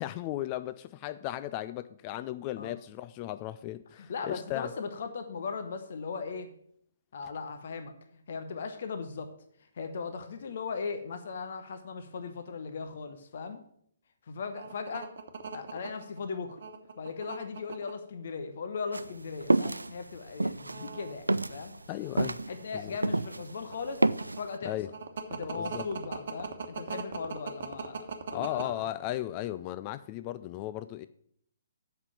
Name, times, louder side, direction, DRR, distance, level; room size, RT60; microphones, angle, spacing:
voice 1, 0.0-4.7 21.9-22.4 22.7-23.0 24.6-24.9 25.6-25.9 28.3-31.1, left 14 dB, 30° left, 0.3 m, -36 dB
voice 2, 4.0-6.5 7.1-7.9 8.3-9.3 9.8-13.6 14.3-15.1 15.5-16.6 17.0-21.7 22.5-24.0 24.4-24.7 25.3-28.7, left 5 dB, 50° left, 0.9 m, -38 dB
sound 1, 14.5-17.9 18.7-19.2 19.5-19.7 20.4-22.1 22.5-28.7, right 6 dB, 55° right, 1.1 m, -39 dB
sound 2, 18.9-23.5 23.8-24.4, right 2 dB, 80° right, 0.3 m, -28 dB
8.0 x 5.6 x 7.3 m
figure-of-eight pair, 130°, 0 cm